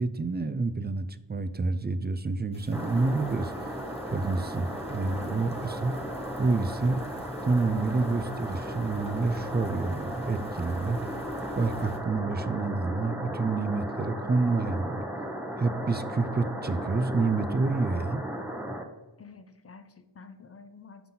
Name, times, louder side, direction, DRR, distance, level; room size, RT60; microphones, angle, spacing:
voice 1, 0.0-3.7 4.1-5.9 6.4-7.0 7.4-11.0 11.6-15.0 15.6-18.2, right 3 dB, 25° right, 12 dB, 0.4 m, -28 dB
sound 1, 2.5-12.0, left 2 dB, 15° left, 1.1 m, -50 dB
sound 2, 2.7-18.8, equal, 5° right, 0.8 m, -35 dB
voice 2, 5.1-5.5 19.2-21.1, left 4 dB, 35° left, 10 dB, 0.6 m, -49 dB
5.7 x 5.6 x 3.8 m, 1.1 s
wide cardioid pair, 60°, 44 cm